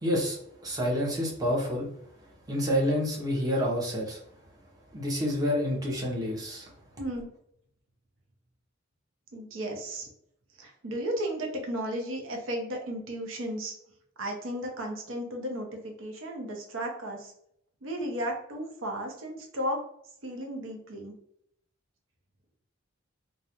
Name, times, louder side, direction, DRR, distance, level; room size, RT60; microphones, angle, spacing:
voice 1, 0.0-0.4 0.6-1.9 2.5-4.2 4.9-6.7, equal, 20° right, -3 dB, 0.6 m, -28 dB
voice 2, 7.0-7.3 9.3-10.1 10.6-13.7 14.2-17.3 17.8-19.9 20.2-21.1, equal, 85° right, 2 dB, 0.6 m, -34 dB
2.3 x 2.0 x 2.8 m, 0.72 s
head